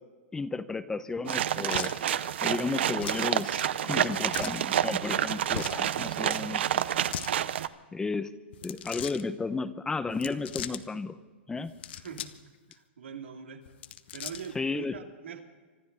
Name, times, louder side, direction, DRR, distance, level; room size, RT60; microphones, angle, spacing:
voice 1, 0.3-2.0 2.4-6.8 7.9-8.3 8.6-11.1 11.5-11.7 14.5-14.9, left 4 dB, 10° left, 12 dB, 0.7 m, -33 dB
sound 1, 1.3-7.7, right 10 dB, 70° right, 0.7 m, -29 dB
sound 2, 1.7-2.0 3.0-3.3 4.3-4.6 5.5-5.8 6.9-7.3 8.5-9.2 10.1-10.8 11.6-12.4 12.7-12.8 13.7-14.6, left 11 dB, 65° left, 1.0 m, -39 dB
voice 2, 11.9-12.4 12.7-13.6 14.1-15.4, right 7 dB, 90° right, 3 dB, 2.6 m, -42 dB
25.5 x 12.5 x 4.0 m, 1.4 s
hypercardioid pair, 140°, 6 cm